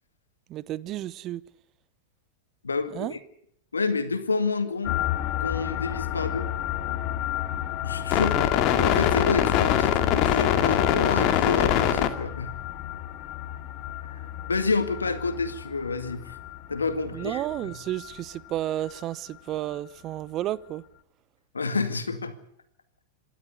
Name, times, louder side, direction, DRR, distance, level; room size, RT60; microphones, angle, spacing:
voice 1, 0.5-1.4 2.9-3.1 17.1-20.8, right 13 dB, 40° right, 0.9 m, -32 dB
voice 2, 2.6-3.2 3.7-5.0 5.4-6.5 7.8-12.5 14.0-14.2 14.5-16.4 16.7-17.8 21.5-22.3, left 4 dB, 90° left, 2.1 m, -29 dB
sound 1, 4.8-16.6 16.9-17.0 17.2-17.5 17.9-18.1, left 11 dB, 45° left, 2.2 m, -26 dB
26.5 x 12.0 x 9.8 m
hypercardioid pair, 95°, 0 cm